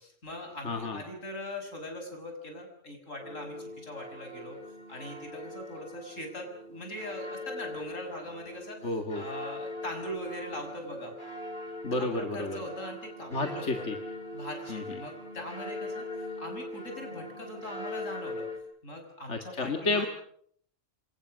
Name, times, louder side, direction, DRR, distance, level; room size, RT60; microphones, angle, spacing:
voice 1, 0.0-4.6 4.9-11.1 11.9-13.9 14.3-18.5 18.8-20.1, left 1 dB, 85° left, 4 dB, 6.8 m, -41 dB
voice 2, 0.6-1.0 8.8-9.3 11.8-12.6 13.3-14.0 14.7-14.8 19.3-20.1, left 2 dB, 65° left, 5 dB, 2.2 m, -31 dB
sound 1, 3.2-18.6, left 1 dB, 40° left, 4.8 m, -41 dB
28.0 x 25.0 x 6.4 m, 0.64 s
omnidirectional pair, 1.3 m